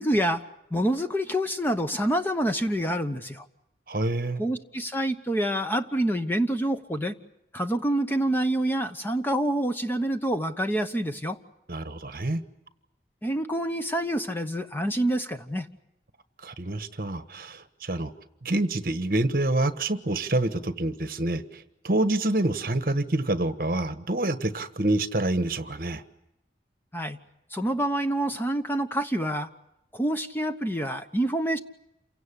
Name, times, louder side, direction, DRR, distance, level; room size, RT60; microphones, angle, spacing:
voice 1, 0.0-3.5 4.4-7.1 7.5-11.4 13.2-15.7 26.9-27.2 27.5-29.5 29.9-31.6, right 1 dB, 10° left, 8 dB, 1.0 m, -27 dB
voice 2, 3.9-4.4 11.7-12.4 16.4-18.1 18.4-26.0, right 2 dB, 55° right, 11 dB, 1.4 m, -27 dB
28.5 x 17.0 x 9.9 m, 0.86 s
head